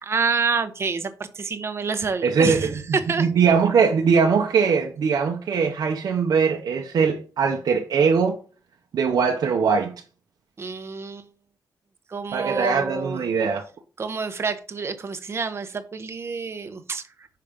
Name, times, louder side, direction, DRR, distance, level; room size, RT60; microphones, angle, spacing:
voice 1, 0.0-3.3 10.6-11.3 12.1-13.2 14.0-17.3, right 5 dB, 40° right, 0.8 m, -28 dB
voice 2, 2.2-2.7 3.2-8.4 8.9-9.9 12.3-13.6, right 5 dB, 75° right, 0.8 m, -21 dB
5.7 x 5.2 x 3.6 m
wide cardioid pair, 125°, 7 cm